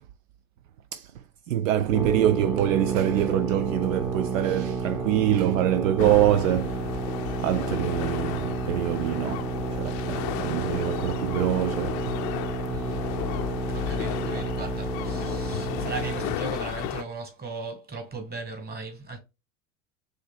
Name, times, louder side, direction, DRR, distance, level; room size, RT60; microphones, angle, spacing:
voice 1, 1.5-7.1 7.4-12.0, right 12 dB, 65° right, 0.5 m, -25 dB
sound 1, 1.9-16.4, right 4 dB, 5° right, 0.7 m, -32 dB
sound 2, 6.0-17.0, left 13 dB, 40° left, 0.5 m, -33 dB
voice 2, 12.7-13.0 13.7-19.2, right 4 dB, 20° right, 1.9 m, -37 dB
5.1 x 3.1 x 2.4 m
hypercardioid pair, 90°, 42 cm